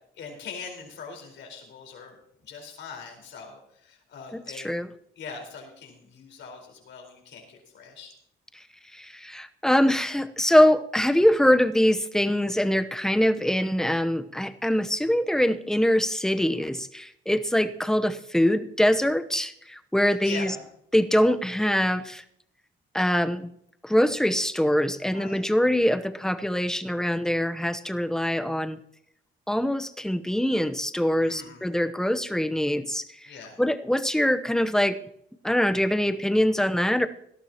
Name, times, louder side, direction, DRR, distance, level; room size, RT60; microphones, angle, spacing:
voice 1, 0.2-4.7 5.1-8.1 20.1-20.7 25.1-25.4 31.2-31.7 33.3-33.6, left 5 dB, 70° left, 2 dB, 4.6 m, -42 dB
voice 2, 4.5-4.9 8.9-20.5 20.9-22.2 22.9-23.5 23.8-28.8 29.5-33.3 33.6-35.0 35.4-37.1, left 1 dB, 5° left, 11 dB, 0.9 m, -23 dB
18.0 x 13.0 x 3.0 m, 0.71 s
cardioid pair, 90°, 20 cm